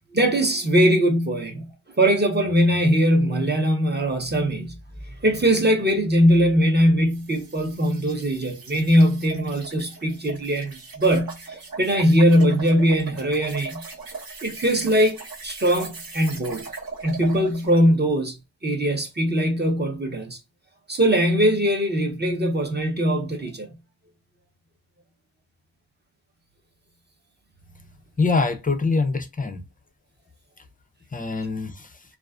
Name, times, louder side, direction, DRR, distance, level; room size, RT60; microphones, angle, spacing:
voice 1, 0.1-1.7 2.0-4.8 5.2-13.8 14.4-16.7 17.0-18.4 18.6-20.4 20.9-23.7, equal, 25° right, 0.7 m, -21 dB
sound 1, 7.1-17.9, right 4 dB, 55° right, 1.0 m, -39 dB
voice 2, 28.2-29.6 31.1-31.9, left 4 dB, 20° left, 0.4 m, -24 dB
2.3 x 2.3 x 2.3 m
wide cardioid pair, 115°, 41 cm